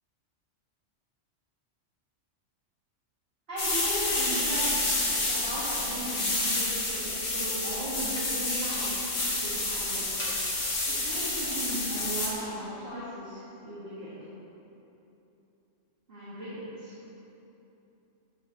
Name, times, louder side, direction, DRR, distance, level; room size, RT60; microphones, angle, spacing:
voice 1, 3.5-4.8 5.2-10.0 10.9-14.1 16.1-16.9, right 1 dB, 50° right, -13 dB, 2.2 m, -37 dB
sound 1, 3.6-12.3, left 2 dB, 60° left, 1.6 m, -29 dB
13.0 x 5.0 x 3.3 m, 3.0 s
omnidirectional pair, 1.3 m